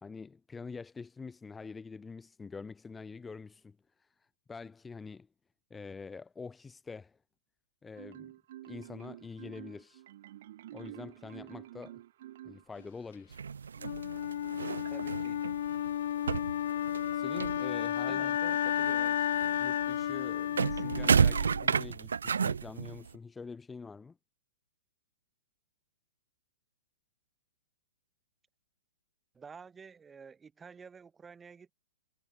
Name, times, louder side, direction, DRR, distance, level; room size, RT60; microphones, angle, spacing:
voice 1, 0.0-5.3 5.7-7.2 7.8-8.3 8.6-10.0 10.7-12.0 12.4-13.4 17.1-18.4 19.6-24.2, left 4 dB, 10° left, 3.1 m, -46 dB
Marimba xylophone, 8.0-13.1, right 14 dB, 50° right, 7.9 m, -49 dB
sound 1, 13.3-18.1 18.4-23.2, right 6 dB, 70° right, 0.4 m, -31 dB
Wind instrument woodwind instrument, 13.8-21.8, left 11 dB, 55° left, 0.9 m, -32 dB
voice 2, 14.9-15.4 18.0-19.3 29.3-31.7, right 5 dB, 15° right, 5.2 m, -50 dB
figure-of-eight pair, 110°, 0 cm